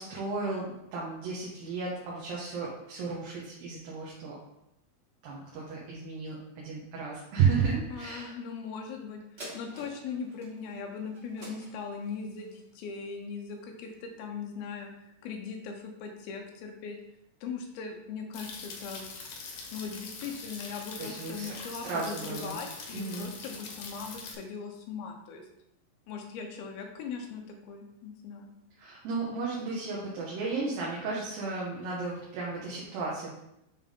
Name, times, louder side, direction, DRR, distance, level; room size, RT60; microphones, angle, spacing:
voice 1, 0.0-4.4 5.2-8.3 21.0-21.5 21.8-22.6 22.9-23.3 28.8-33.3, right 5 dB, 75° right, -5 dB, 2.8 m, -33 dB
voice 2, 7.9-14.9 15.2-17.0 17.4-19.1 19.7-25.5 26.1-28.5, left 5 dB, 90° left, 3 dB, 2.8 m, -39 dB
sound 1, 9.4-14.1 14.6-14.7, right 1 dB, 40° right, 0.8 m, -49 dB
sound 2, 18.3-24.3, left 4 dB, 65° left, 1.9 m, -43 dB
8.9 x 3.7 x 3.7 m, 0.85 s
omnidirectional pair, 4.2 m